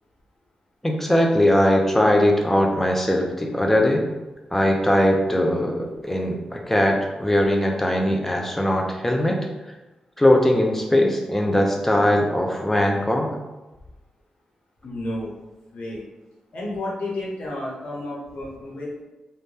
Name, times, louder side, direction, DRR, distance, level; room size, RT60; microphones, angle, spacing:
voice 1, 0.8-4.0 4.5-9.4 10.2-13.3, left 1 dB, 10° left, 1 dB, 0.5 m, -20 dB
voice 2, 14.8-15.3 15.7-16.0 16.5-19.0, left 1 dB, 70° left, -4 dB, 1.0 m, -31 dB
2.5 x 2.1 x 3.3 m, 1.1 s
cardioid pair, 65°, 2 cm